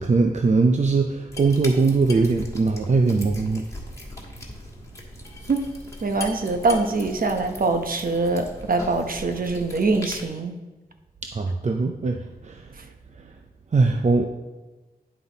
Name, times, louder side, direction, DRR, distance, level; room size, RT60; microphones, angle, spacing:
voice 1, 0.0-3.6 11.3-12.2 12.4-12.6 13.7-14.3, right 3 dB, 45° right, 4 dB, 0.6 m, -20 dB
sound 1, 1.3-10.3, left 1 dB, 20° left, 1.7 m, -39 dB
voice 2, 6.0-10.5, right 3 dB, 60° right, 6 dB, 0.9 m, -23 dB
9.7 x 5.7 x 4.0 m, 1.1 s
wide cardioid pair, 80°, 16 cm